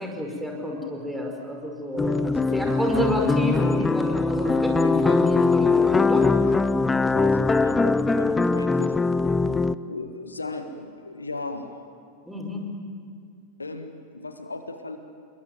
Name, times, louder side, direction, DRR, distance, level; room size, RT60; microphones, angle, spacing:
voice 1, 0.0-2.2 2.5-6.3 12.3-12.6, left 1 dB, 5° right, 1 dB, 5.3 m, -29 dB
sound 1, 2.0-9.8, left 3 dB, 10° left, 0.6 m, -21 dB
voice 2, 2.1-2.8 4.8-5.3 6.0-6.4 7.0-8.9 9.8-11.7 13.6-15.0, left 3 dB, 80° left, 7 dB, 1.7 m, -37 dB
28.0 x 22.0 x 9.4 m, 2.2 s
figure-of-eight pair, 90°, 0 cm